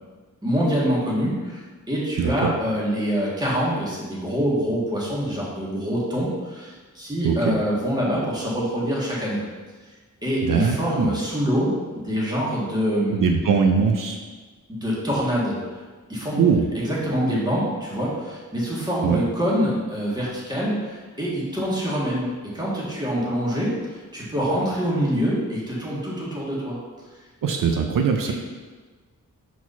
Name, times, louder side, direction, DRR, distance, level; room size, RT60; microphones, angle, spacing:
voice 1, 0.4-9.4 10.2-13.4 14.7-15.6 16.1-16.4 16.8-26.8 28.3-28.4, equal, 10° right, -7 dB, 1.8 m, -25 dB
voice 2, 2.2-2.6 7.2-7.6 10.4-11.1 13.1-14.2 16.4-16.7 19.0-19.2 27.4-28.3, right 6 dB, 80° right, 4 dB, 0.6 m, -21 dB
4.6 x 4.1 x 5.6 m, 1.4 s
wide cardioid pair, 135°, 32 cm